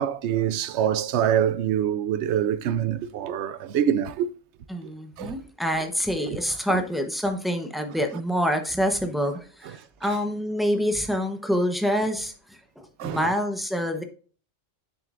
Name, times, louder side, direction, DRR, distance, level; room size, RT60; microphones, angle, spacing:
voice 1, 0.0-4.3 4.8-4.9 5.2-5.4 13.0-13.3, right 9 dB, 70° right, 0.8 m, -25 dB
voice 2, 4.7-14.0, equal, ahead, 0.8 m, -26 dB
7.6 x 6.7 x 2.5 m
omnidirectional pair, 1.3 m